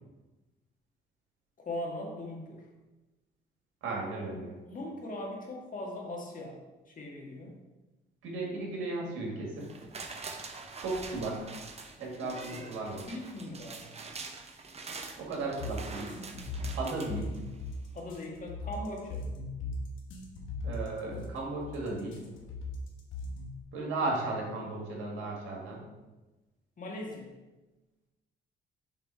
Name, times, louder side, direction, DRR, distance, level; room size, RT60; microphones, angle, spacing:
voice 1, 1.6-2.6 4.6-6.6 6.9-7.6 12.2-12.7 13.1-13.9 17.9-19.3 26.8-27.3, left 1 dB, 40° left, -1 dB, 1.6 m, -40 dB
voice 2, 3.8-4.5 8.2-9.7 10.8-11.5 12.0-13.0 15.2-16.1 16.8-17.3 20.6-22.3 23.7-25.8, right 2 dB, 90° right, -2 dB, 1.8 m, -35 dB
sound 1, 9.6-17.8 18.2-18.3, right 4 dB, 30° right, 0.7 m, -45 dB
sound 2, 15.6-23.6, left 2 dB, 80° left, 1.1 m, -38 dB
6.9 x 3.4 x 4.6 m, 1.1 s
cardioid pair, 90°, 20 cm